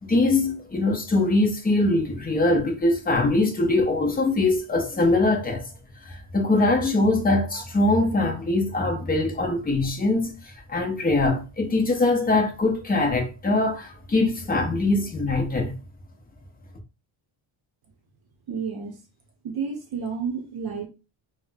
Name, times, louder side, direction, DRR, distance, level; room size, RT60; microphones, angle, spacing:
voice 1, 0.0-5.7 6.0-15.7, left 2 dB, 20° left, 0.5 m, -22 dB
voice 2, 18.5-19.0 19.4-20.9, right 6 dB, 50° right, 0.6 m, -30 dB
4.1 x 2.1 x 2.2 m
wide cardioid pair, 180°, 50 cm